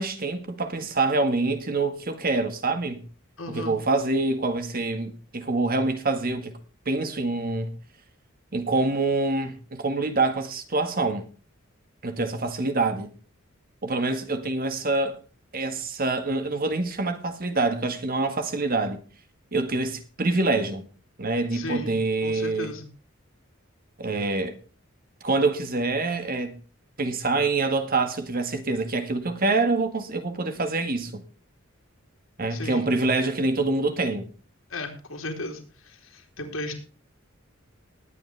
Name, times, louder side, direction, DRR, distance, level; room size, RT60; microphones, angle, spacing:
voice 1, 0.0-3.0 3.5-6.6 6.8-7.8 8.5-11.3 12.0-13.1 13.8-15.2 15.5-19.0 19.5-20.8 21.2-22.7 24.0-24.6 25.2-26.6 27.0-31.2 32.4-34.3, right 3 dB, 45° right, 1.7 m, -26 dB
voice 2, 3.4-3.8 21.5-21.9 22.2-22.9 32.5-32.9 34.7-36.7, left 2 dB, 90° left, 3.4 m, -35 dB
19.5 x 8.5 x 3.4 m
head